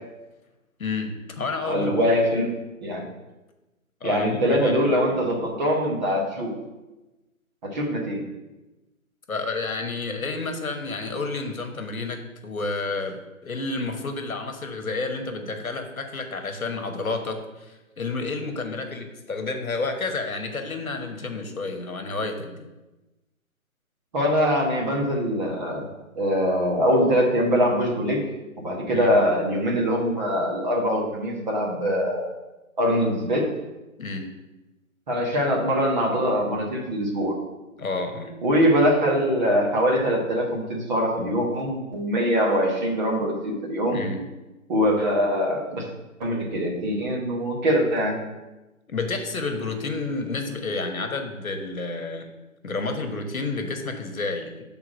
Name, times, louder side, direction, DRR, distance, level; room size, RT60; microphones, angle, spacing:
voice 1, 0.8-2.0 4.0-4.8 5.1-5.2 9.3-22.7 28.9-29.1 34.0-34.3 37.8-38.4 43.9-44.2 48.9-52.3 52.6-54.6, left 3 dB, 75° left, 5 dB, 1.1 m, -30 dB
voice 2, 1.6-2.5 2.8-3.0 4.0-6.5 7.7-8.2 24.1-25.9 26.1-28.2 28.6-32.3 32.8-33.4 35.1-37.3 38.4-44.0 44.7-45.8 46.2-48.2, equal, 30° right, -2 dB, 1.3 m, -23 dB
5.9 x 3.7 x 6.1 m, 1.1 s
figure-of-eight pair, 145°, 42 cm